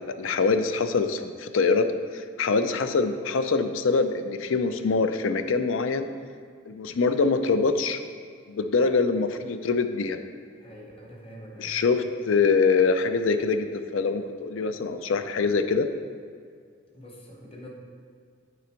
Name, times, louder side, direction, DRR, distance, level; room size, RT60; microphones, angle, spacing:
voice 1, 0.0-1.9 2.1-6.1 6.7-8.0 8.5-10.2 11.6-15.9, left 4 dB, 70° left, 9 dB, 0.4 m, -24 dB
voice 2, 10.5-12.1 16.9-17.7, equal, 25° left, -1 dB, 1.0 m, -45 dB
9.4 x 3.9 x 4.4 m, 2.1 s
head